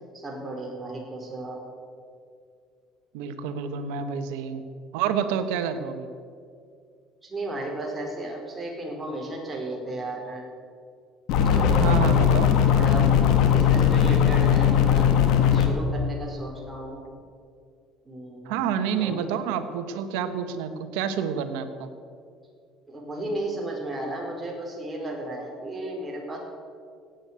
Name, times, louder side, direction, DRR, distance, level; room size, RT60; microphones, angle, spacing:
voice 1, 0.2-1.6 7.2-10.4 11.3-12.0 12.3-12.4 12.7-13.1 13.4-17.0 18.0-18.6 19.0-19.2 22.9-26.4, right 1 dB, 20° right, -1 dB, 4.9 m, -34 dB
voice 2, 3.1-4.6 4.9-6.1 11.7-12.5 16.7-16.8 18.4-21.9, right 7 dB, 85° right, 9 dB, 1.3 m, -28 dB
sound 1, 11.3-15.7, left 8 dB, 75° left, 1.9 m, -19 dB
16.0 x 9.3 x 8.3 m, 2.3 s
supercardioid pair, 90°, 0 cm